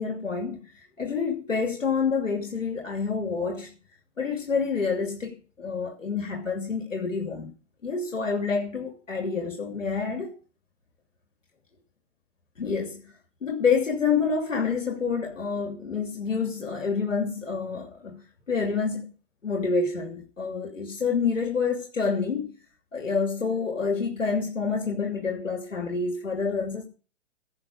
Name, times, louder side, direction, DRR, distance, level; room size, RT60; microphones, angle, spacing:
voice 1, 0.0-3.7 4.2-7.5 7.8-10.3 12.6-13.0 13.4-19.1 19.4-22.5 22.9-26.8, left 5 dB, 85° left, 2.8 m, -28 dB
16.5 x 6.4 x 6.4 m
figure-of-eight pair, 120°, 37 cm